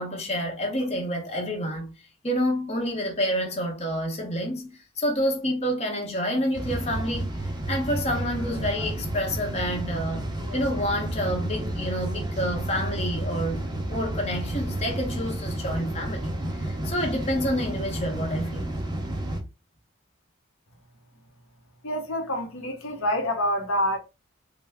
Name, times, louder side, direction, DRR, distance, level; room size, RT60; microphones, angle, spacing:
voice 1, 0.0-1.9 2.2-16.3 16.6-18.7, equal, 30° left, 0.9 m, -28 dB
sound 1, 6.5-19.4, right 1 dB, 20° right, 0.6 m, -31 dB
voice 2, 21.8-24.0, equal, 85° left, 0.8 m, -27 dB
3.3 x 2.1 x 3.4 m
head